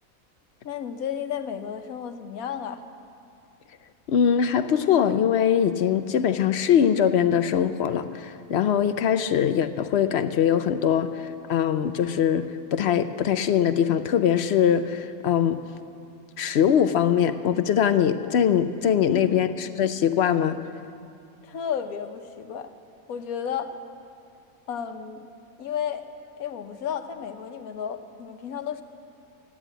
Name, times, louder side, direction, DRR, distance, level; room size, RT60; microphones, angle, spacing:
voice 1, 0.6-2.8 19.1-19.4 21.4-22.7 23.1-23.8 24.7-25.2 25.6-26.0 26.4-28.8, left 8 dB, 85° left, 8 dB, 1.3 m, -32 dB
voice 2, 4.1-15.6 16.4-20.6, left 8 dB, 65° left, 11 dB, 0.7 m, -22 dB
14.5 x 10.0 x 8.9 m, 2.5 s
omnidirectional pair, 1.5 m